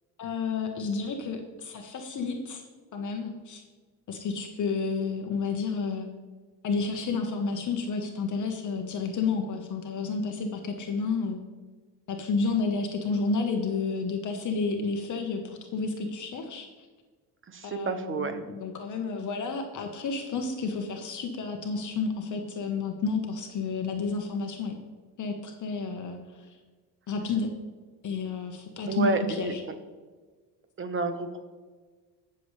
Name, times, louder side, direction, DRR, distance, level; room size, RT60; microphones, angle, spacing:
voice 1, 0.2-2.6 2.9-3.6 4.1-6.1 6.6-11.4 12.1-16.7 17.6-24.7 25.2-26.6 27.1-27.5 28.0-29.6, left 4 dB, 45° left, 3 dB, 1.2 m, -31 dB
voice 2, 17.5-18.4 28.9-29.7 30.8-31.4, right 3 dB, 30° right, 8 dB, 1.1 m, -30 dB
18.0 x 7.0 x 3.2 m, 1.4 s
cardioid pair, 120°, 40 cm